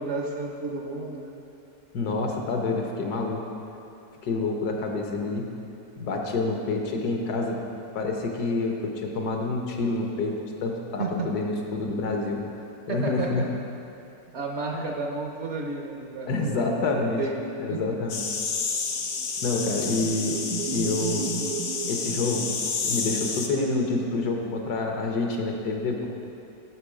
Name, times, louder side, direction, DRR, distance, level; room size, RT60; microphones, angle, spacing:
voice 1, 0.0-1.4 11.0-11.3 12.9-13.3 14.3-16.8 17.2-17.4 17.7-18.0 19.7-20.0, right 3 dB, 55° right, 1 dB, 0.8 m, -32 dB
voice 2, 1.9-3.4 4.2-5.5 6.0-7.6 7.9-10.3 10.6-12.4 12.9-13.5 14.7-14.9 16.3-17.2 17.6-18.2 19.4-21.4 21.9-22.5 22.8-26.1, left 3 dB, 80° left, 1 dB, 1.5 m, -27 dB
sound 1, 18.1-23.5, left 5 dB, 55° left, 0.6 m, -30 dB
sound 2, 19.1-23.2, right 7 dB, 80° right, 1.1 m, -35 dB
9.4 x 6.2 x 4.8 m, 2.9 s
omnidirectional pair, 1.7 m